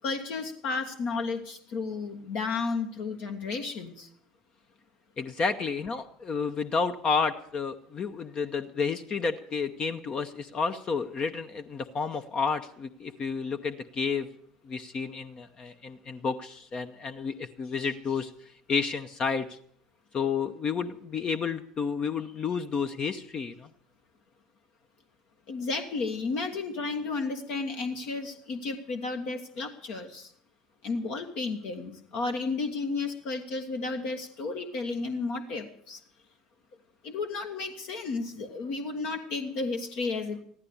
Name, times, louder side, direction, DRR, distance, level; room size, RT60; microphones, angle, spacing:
voice 1, 0.0-4.1 25.5-30.3 30.8-36.0 37.0-40.4, left 4 dB, 60° left, 5 dB, 1.4 m, -33 dB
voice 2, 5.2-14.3 14.6-19.6 20.1-23.7, left 5 dB, 35° left, 7 dB, 0.8 m, -31 dB
14.5 x 11.5 x 7.0 m, 0.63 s
hypercardioid pair, 70°, 2 cm